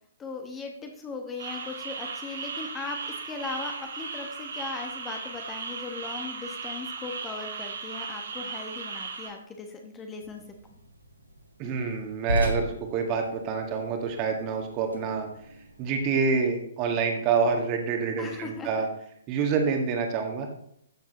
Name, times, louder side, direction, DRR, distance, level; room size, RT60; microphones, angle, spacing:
voice 1, 0.2-10.4 18.2-18.7, left 4 dB, 15° left, 3 dB, 1.2 m, -38 dB
sound 1, 1.4-9.3, right 5 dB, 60° right, 2.3 m, -37 dB
sound 2, 10.2-16.4, equal, 85° right, 1.8 m, -36 dB
voice 2, 11.6-15.3 15.8-18.9 19.3-20.5, right 5 dB, 30° right, 3 dB, 1.9 m, -27 dB
14.0 x 7.2 x 3.1 m, 0.71 s
figure-of-eight pair, 125°, 0 cm